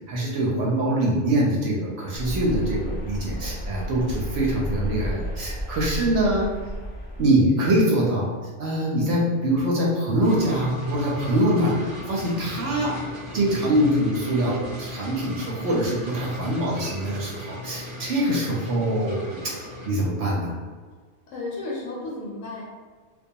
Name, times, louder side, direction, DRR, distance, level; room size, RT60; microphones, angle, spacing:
voice 1, 0.1-6.5 7.2-8.3 8.6-13.0 13.3-20.5, right 1 dB, 65° right, -4 dB, 0.8 m, -24 dB
sound 1, 2.1-7.3, equal, 20° left, 0.8 m, -32 dB
sound 2, 10.2-19.9, left 1 dB, 30° right, 0.6 m, -37 dB
voice 2, 21.3-22.6, left 2 dB, 75° left, -5 dB, 1.0 m, -33 dB
2.2 x 2.2 x 2.7 m, 1.5 s
omnidirectional pair, 1.4 m